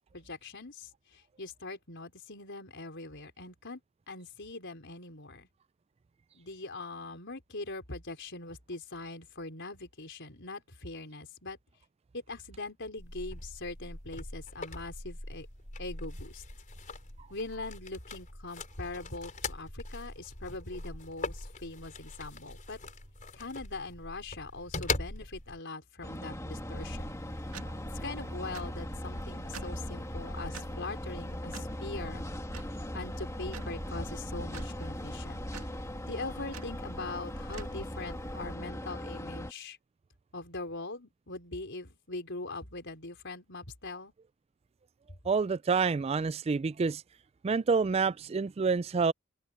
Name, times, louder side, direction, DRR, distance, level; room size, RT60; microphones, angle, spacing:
voice 1, 0.1-3.8 4.1-5.5 6.3-11.6 12.1-15.5 15.8-16.4 17.3-22.8 23.3-27.1 28.0-32.2 32.9-35.4 36.1-39.8 40.3-44.1, left 3 dB, 55° left, 5.0 m, -42 dB
sound 1, 13.0-25.6, left 3 dB, 35° left, 4.5 m, -41 dB
sound 2, 26.0-39.5, left 1 dB, 15° left, 2.3 m, -39 dB
sound 3, 26.7-38.5, right 2 dB, 70° right, 2.2 m, -46 dB
voice 2, 45.3-47.0 47.4-49.1, right 5 dB, 25° right, 0.3 m, -28 dB
open air
head